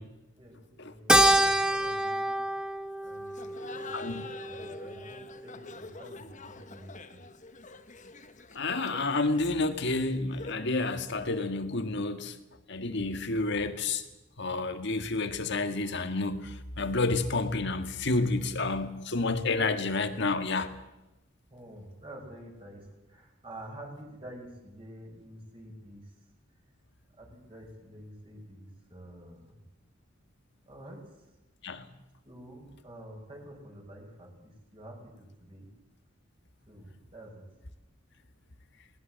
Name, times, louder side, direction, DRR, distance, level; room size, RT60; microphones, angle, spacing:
voice 1, 0.4-2.4 3.0-7.2 21.5-26.0 27.2-29.5 30.7-31.0 32.2-35.7 36.7-37.4, right 1 dB, 30° right, 6.1 m, -48 dB
Keyboard (musical), 1.1-5.7, right 1 dB, 5° right, 1.0 m, -27 dB
Laughter, 3.3-10.8, left 3 dB, 40° left, 1.3 m, -47 dB
voice 2, 3.9-4.2 8.5-12.4 12.7-14.0 14.4-20.7 31.6-31.8, left 3 dB, 60° left, 1.7 m, -30 dB
20.5 x 19.0 x 7.6 m
head